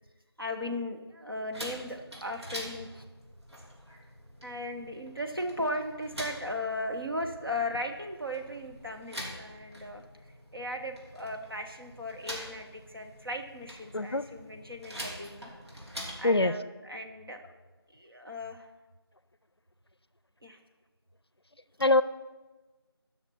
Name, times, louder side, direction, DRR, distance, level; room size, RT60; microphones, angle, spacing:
voice 1, 0.4-3.1 4.4-15.5 16.2-17.4 17.9-18.7 20.4-20.6, left 1 dB, 60° right, 3 dB, 1.1 m, -37 dB
sound 1, 1.5-16.3, equal, 80° right, 2.8 m, -45 dB
voice 2, 13.9-14.2 16.2-16.5 21.8-22.0, left 2 dB, 70° left, 15 dB, 0.5 m, -23 dB
12.5 x 6.0 x 4.2 m, 1.2 s
figure-of-eight pair, 180°, 14 cm